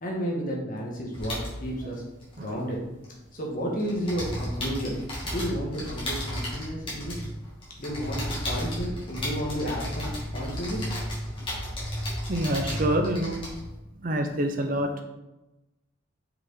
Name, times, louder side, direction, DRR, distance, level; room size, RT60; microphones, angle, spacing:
voice 1, 0.0-2.0 2.4-2.8 3.3-5.0 5.2-7.2 7.8-11.0, equal, 45° left, -2 dB, 1.6 m, -32 dB
sound 1, 1.1-3.4 3.6-13.8, equal, 25° left, 2.1 m, -33 dB
voice 2, 12.3-13.4 14.0-15.0, right 1 dB, 45° right, 5 dB, 0.7 m, -27 dB
6.0 x 5.1 x 4.0 m, 0.99 s
head